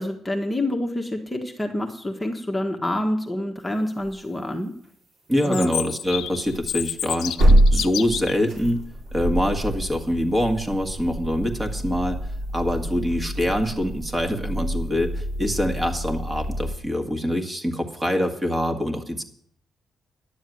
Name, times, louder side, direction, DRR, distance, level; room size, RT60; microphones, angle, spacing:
voice 1, 0.0-4.7 5.4-5.7, left 1 dB, 10° left, 2 dB, 1.4 m, -27 dB
sound 1, 4.0-4.1 4.8-4.9 6.1-16.8, right 1 dB, 75° right, 4.0 m, -25 dB
voice 2, 5.3-7.4 7.7-8.8 9.1-12.2 12.5-19.2, equal, 15° right, 4 dB, 1.8 m, -25 dB
Chirp tweet, 5.4-8.4, left 12 dB, 90° left, 0.4 m, -30 dB
10.5 x 7.0 x 9.4 m, 0.65 s
cardioid pair, 100°, 0 cm